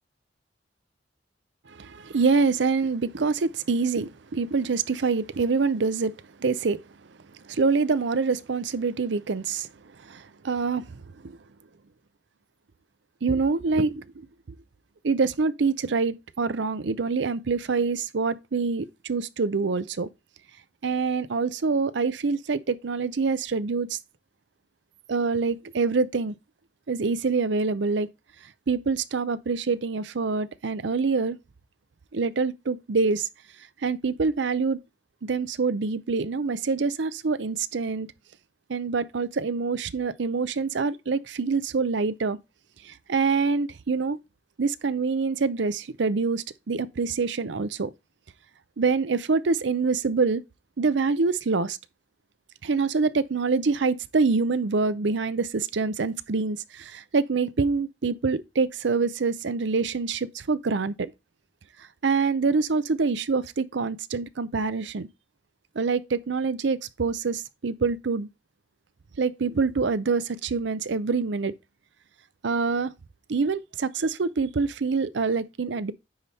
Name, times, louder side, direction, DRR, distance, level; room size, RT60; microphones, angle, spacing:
voice 1, 1.7-6.1 6.4-6.8 7.4-9.7 10.0-11.4 13.2-14.3 15.0-20.1 20.8-24.0 25.1-26.4 26.9-28.1 28.7-31.4 32.1-33.3 33.8-34.8 35.2-38.1 38.7-42.4 42.8-44.2 44.6-47.9 48.8-50.4 50.8-51.8 52.6-61.1 62.0-65.1 65.8-68.3 69.2-71.5 72.4-72.9 73.3-75.9, right 4 dB, 65° right, 0.6 m, -25 dB
9.5 x 3.5 x 4.1 m
head